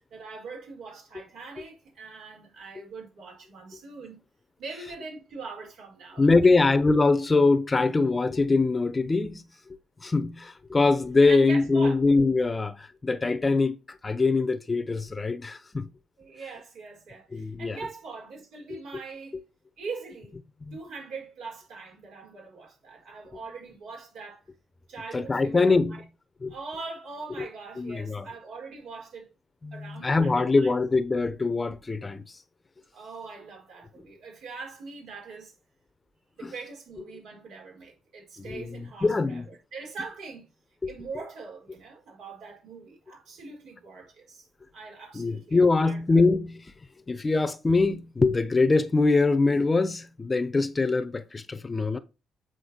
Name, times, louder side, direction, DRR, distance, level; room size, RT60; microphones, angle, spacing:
voice 1, 0.1-4.2 4.6-6.3 11.3-12.0 16.2-19.4 19.8-20.3 20.7-24.4 24.9-25.7 26.5-29.3 29.7-30.7 32.9-35.5 36.4-40.5 40.8-44.5 44.7-46.0, right 4 dB, 80° right, 4.5 m, -42 dB
voice 2, 6.2-9.4 10.0-15.9 17.3-17.8 18.7-18.8 20.6-20.8 25.1-26.0 26.4-26.5 27.4-27.5 27.8-28.3 29.6-32.4 36.4-36.5 38.4-39.4 40.8-40.9 45.1-46.7 47.1-52.0, left 3 dB, 25° left, 0.8 m, -23 dB
8.1 x 4.5 x 4.4 m
cardioid pair, 90°, 0 cm